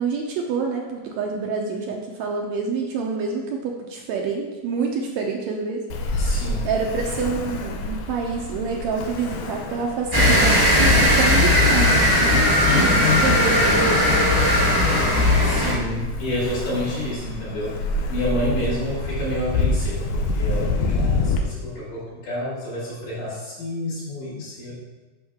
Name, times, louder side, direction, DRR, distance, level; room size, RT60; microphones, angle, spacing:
voice 1, 0.0-6.4 6.6-12.9 13.2-14.1 18.6-18.7, right 5 dB, 75° right, 1 dB, 1.8 m, -27 dB
Ocean, 5.9-21.4, left 2 dB, 90° left, 2.3 m, -28 dB
voice 2, 6.2-6.7 12.6-13.3 15.4-17.8 18.1-24.8, left 1 dB, 75° left, -12 dB, 4.0 m, -28 dB
sound 1, 10.1-15.7, left 1 dB, 25° right, 0.4 m, -17 dB
7.9 x 5.9 x 3.6 m, 1.2 s
omnidirectional pair, 3.6 m